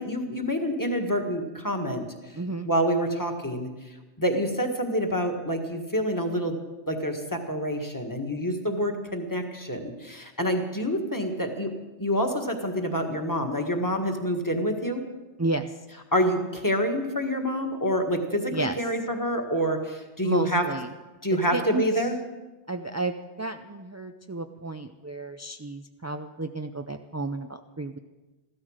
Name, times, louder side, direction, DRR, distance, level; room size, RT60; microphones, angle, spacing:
voice 1, 0.0-2.0 2.6-3.7 4.2-6.6 6.9-11.7 12.0-15.0 16.1-20.6 21.2-22.2, equal, 15° left, 4 dB, 1.6 m, -27 dB
voice 2, 2.4-2.7 15.4-15.7 18.5-18.8 20.2-20.9 21.3-22.1 22.7-28.0, right 2 dB, 30° right, 6 dB, 0.3 m, -32 dB
15.0 x 13.0 x 6.5 m, 1.2 s
omnidirectional pair, 1.2 m